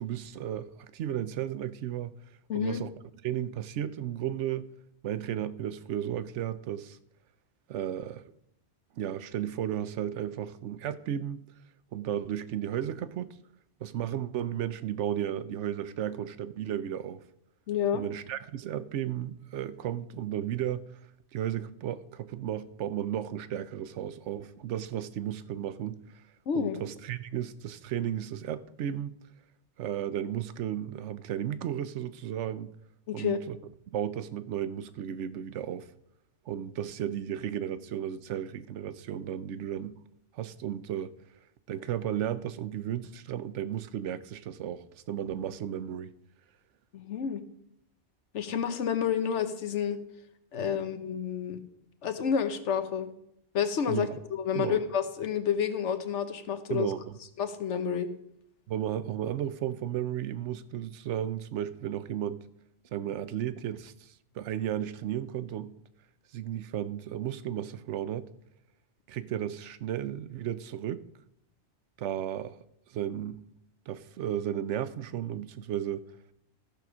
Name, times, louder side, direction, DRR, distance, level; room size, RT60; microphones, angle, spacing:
voice 1, 0.0-2.1 2.5-2.9 3.2-4.7 5.0-7.0 7.7-8.2 9.0-11.4 11.9-13.4 13.8-17.2 17.9-20.9 21.3-26.0 26.5-29.1 29.8-32.7 33.1-33.6 33.9-35.9 36.5-40.0 40.3-41.1 41.7-46.1 53.9-54.2 54.5-54.8 56.7-57.2 58.7-62.4 62.9-65.7 66.3-68.3 69.1-71.0 72.0-72.6 72.9-73.4 73.9-76.1, right 10 dB, 80° right, 0.9 m, -34 dB
voice 2, 2.5-2.8 17.7-18.0 26.5-26.8 33.1-33.4 46.9-47.4 48.3-50.0 50.5-51.6 52.0-53.1 53.5-56.9 57.4-58.1, left 8 dB, 75° left, 1.2 m, -29 dB
13.5 x 5.0 x 6.1 m
omnidirectional pair, 1.2 m